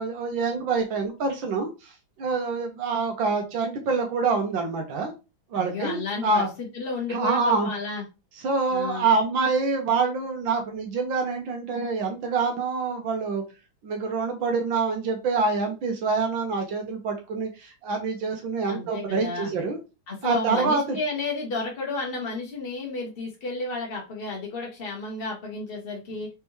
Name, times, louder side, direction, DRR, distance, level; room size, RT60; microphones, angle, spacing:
voice 1, 0.0-1.9 2.2-5.1 5.5-6.5 7.1-7.7 8.4-13.4 13.8-19.8 20.2-21.0, right 4 dB, 70° right, 4 dB, 1.5 m, -26 dB
voice 2, 5.5-8.0 8.7-9.1 18.7-19.5 20.1-26.3, left 3 dB, 55° left, -1 dB, 0.6 m, -32 dB
4.1 x 3.4 x 3.1 m, 0.29 s
omnidirectional pair, 2.3 m